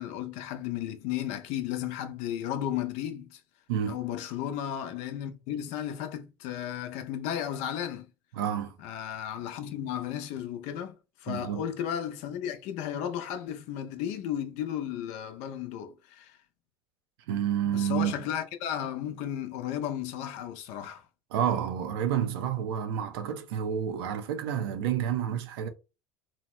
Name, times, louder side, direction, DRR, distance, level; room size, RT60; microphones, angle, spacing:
voice 1, 0.0-3.4 3.9-8.1 8.8-16.4 17.6-21.1, left 10 dB, 70° left, 0.6 m, -34 dB
voice 2, 3.7-4.0 8.3-8.7 11.3-11.6 17.3-18.1 21.3-25.7, right 9 dB, 85° right, 0.5 m, -29 dB
2.8 x 2.1 x 3.0 m
supercardioid pair, 90°, 12 cm